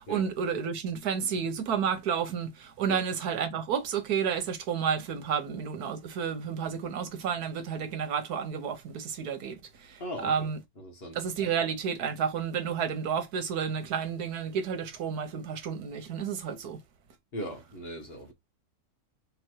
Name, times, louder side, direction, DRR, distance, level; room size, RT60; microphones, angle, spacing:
voice 1, 0.0-10.6 11.1-16.8, right 7 dB, 85° right, 1.5 m, -31 dB
voice 2, 10.0-10.5 10.8-11.2 17.3-18.3, equal, 45° left, 1.5 m, -39 dB
3.7 x 3.1 x 4.5 m
omnidirectional pair, 1.6 m